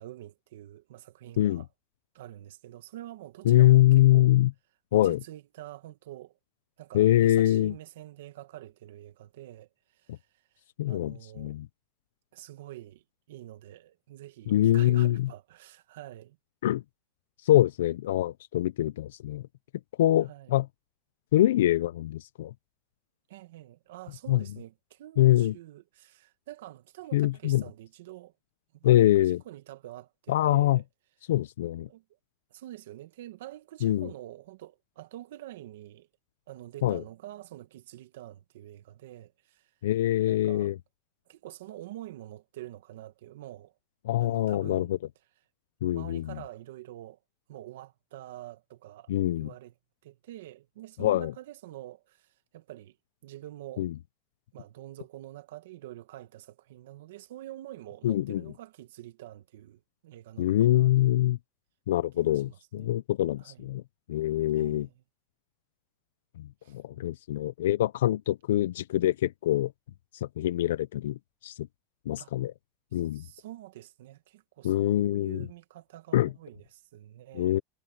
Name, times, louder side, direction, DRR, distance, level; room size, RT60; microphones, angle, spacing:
voice 1, 0.0-1.7 2.1-4.3 4.9-6.3 6.8-11.6 12.3-16.4 20.2-20.6 23.3-28.3 28.8-30.8 31.9-32.0 32.5-36.1 36.5-39.7 40.3-40.7 41.3-43.7 44.2-44.9 45.9-47.2 47.5-49.1 49.4-49.7 50.0-53.0 53.2-53.9 54.5-61.2 62.2-62.9 63.4-63.7 64.5-64.9 66.6-66.8 72.2-72.3 72.9-77.6, right 14 dB, 80° right, 1.5 m, -46 dB
voice 2, 3.5-4.5 4.9-5.2 6.9-7.7 10.1-10.2 10.8-11.7 14.5-15.3 16.6-16.8 17.4-19.4 20.0-20.7 21.3-22.5 24.3-24.4 25.2-25.5 27.1-27.6 28.8-29.4 30.3-30.8 31.3-31.9 33.8-34.1 36.8-37.0 39.8-40.7 44.1-45.0 45.8-46.2 49.1-49.5 51.0-51.3 53.8-53.9 58.0-58.4 60.4-61.4 61.9-63.8 64.1-64.9 66.4-66.5 66.7-69.7 70.4-71.2 71.4-71.7 72.1-72.5 72.9-73.2 74.6-75.5 76.1-76.3 77.3-77.6, left 14 dB, 85° left, 0.5 m, -24 dB
supercardioid pair, 130°, 0 cm